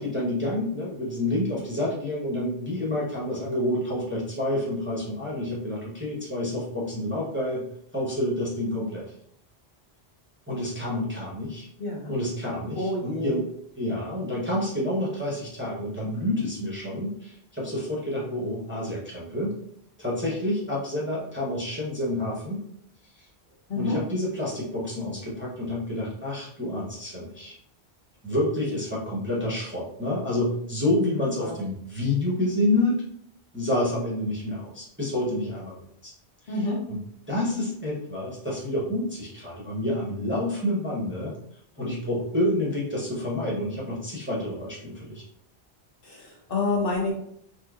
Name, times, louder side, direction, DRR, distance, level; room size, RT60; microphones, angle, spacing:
voice 1, 0.0-7.6 7.9-9.1 10.5-11.7 12.1-13.5 13.8-19.5 20.0-22.6 23.2-23.3 23.8-27.6 28.2-33.0 33.5-35.7 36.0-36.1 36.4-37.0 37.3-41.3 41.8-45.2, left 1 dB, 15° right, -6 dB, 0.7 m, -28 dB
voice 2, 11.8-12.1 12.8-13.4 23.7-24.0 31.4-31.5 36.5-36.8 46.0-47.1, left 2 dB, 60° left, -2 dB, 1.0 m, -28 dB
3.5 x 2.9 x 2.3 m, 0.69 s
omnidirectional pair, 1.1 m